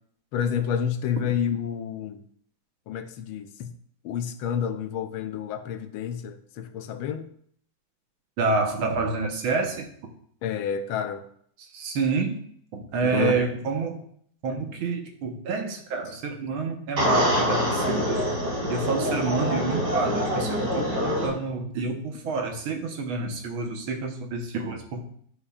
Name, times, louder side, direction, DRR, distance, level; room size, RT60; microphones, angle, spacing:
voice 1, 0.3-2.2 2.9-3.7 4.0-7.3 10.4-11.2 13.1-13.4 17.2-17.4, left 8 dB, 85° left, 8 dB, 1.5 m, -29 dB
voice 2, 8.4-9.9 11.7-12.4 12.7-14.0 14.4-18.3 18.7-25.0, right 4 dB, 80° right, 3 dB, 1.9 m, -28 dB
sound 1, 17.0-21.3, equal, 55° right, 3.0 m, -25 dB
11.0 x 5.6 x 2.4 m, 0.63 s
omnidirectional pair, 2.2 m